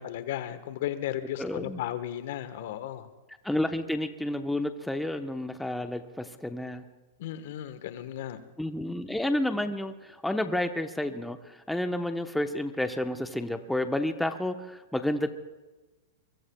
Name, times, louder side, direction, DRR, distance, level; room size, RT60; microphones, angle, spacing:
voice 1, 0.0-3.1 7.2-8.4, left 12 dB, 65° left, 11 dB, 1.2 m, -35 dB
voice 2, 1.4-1.8 3.4-6.8 8.6-15.3, left 1 dB, 5° left, 7 dB, 0.9 m, -30 dB
24.0 x 23.5 x 2.3 m, 1.2 s
hypercardioid pair, 115°, 0 cm